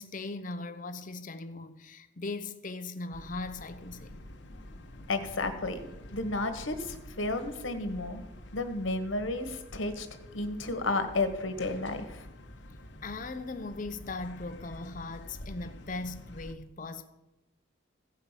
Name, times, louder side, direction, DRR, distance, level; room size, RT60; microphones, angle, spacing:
voice 1, 0.0-4.3 13.0-17.1, left 3 dB, 40° left, 0.7 m, -39 dB
sound 1, 3.1-16.5, left 1 dB, 60° left, 1.1 m, -48 dB
voice 2, 5.1-8.2 8.5-10.1 10.3-12.2, left 2 dB, 80° left, 1.4 m, -32 dB
15.5 x 5.5 x 7.3 m
head